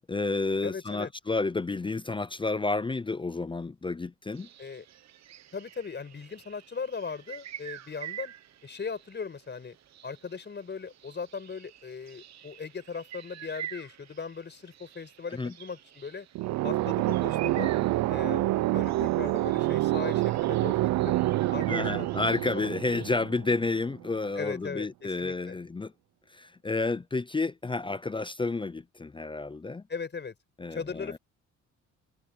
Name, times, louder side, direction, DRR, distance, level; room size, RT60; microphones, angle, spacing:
voice 1, 0.0-4.5 15.3-15.5 21.7-25.9 26.3-29.8 30.6-31.2, left 3 dB, 15° left, 0.6 m, -30 dB
voice 2, 0.6-1.1 4.6-4.9 5.5-8.3 8.6-9.8 10.0-16.3 16.6-17.7 18.1-18.5 18.7-21.2 21.5-22.2 22.5-23.1 24.4-25.6 29.9-30.3 30.7-31.2, left 5 dB, 35° left, 5.6 m, -38 dB
sound 1, 4.3-23.2, right 10 dB, 60° right, 1.3 m, -47 dB
sound 2, 16.3-24.0, right 17 dB, 80° right, 0.6 m, -27 dB
cardioid pair, 90°, 30 cm